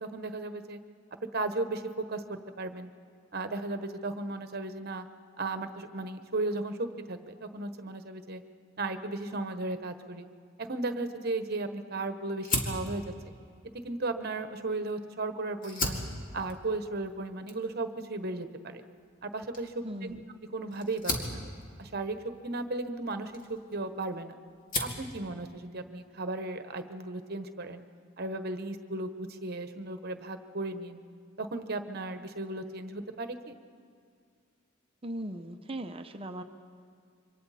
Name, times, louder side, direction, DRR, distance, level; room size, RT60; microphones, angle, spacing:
voice 1, 0.0-0.8 1.3-2.9 3.3-5.1 5.4-8.4 8.8-10.2 10.6-13.0 13.8-16.0 16.3-18.8 19.2-20.2 20.5-21.4 21.8-24.3 24.7-27.8 28.2-31.0 31.4-33.6, right 2 dB, 50° right, 8 dB, 1.1 m, -35 dB
Fire, 12.4-15.0 15.5-24.1 24.5-25.1, left 2 dB, 40° left, 2.2 m, -37 dB
voice 2, 19.8-20.2 35.0-36.4, right 1 dB, 25° right, 6 dB, 0.8 m, -38 dB
27.5 x 24.5 x 4.3 m, 2.2 s
head